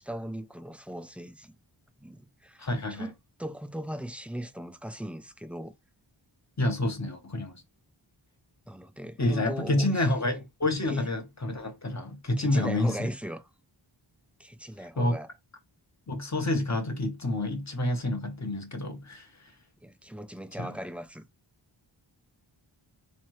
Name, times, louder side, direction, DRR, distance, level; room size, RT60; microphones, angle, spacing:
voice 1, 0.0-1.5 2.0-3.1 3.4-5.7 8.7-10.2 10.9-11.1 12.4-13.4 14.4-15.3 19.8-21.2, equal, 5° right, 0.3 m, -38 dB
voice 2, 2.6-3.1 6.6-7.6 9.2-13.1 15.0-15.2 16.1-19.3 20.6-20.7, left 1 dB, 35° left, 0.9 m, -28 dB
3.5 x 3.1 x 3.1 m
wide cardioid pair, 55°, 48 cm